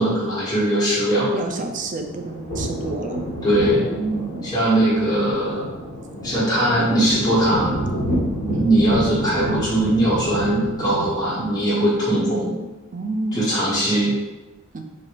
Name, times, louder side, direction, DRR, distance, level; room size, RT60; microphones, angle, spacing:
voice 1, 0.0-1.3 3.4-3.8 4.5-5.7 6.2-7.7 8.4-12.5 13.3-14.1, right 1 dB, 20° left, -9 dB, 1.2 m, -20 dB
voice 2, 1.3-3.2 3.7-4.5 7.5-7.7 8.5-8.7 10.9-11.2 12.1-12.6 12.9-13.4 14.7-14.8, right 3 dB, 35° right, 5 dB, 0.4 m, -29 dB
sound 1, 1.6-11.9, equal, 40° left, 1.3 m, -29 dB
4.2 x 3.2 x 2.5 m, 1.1 s
head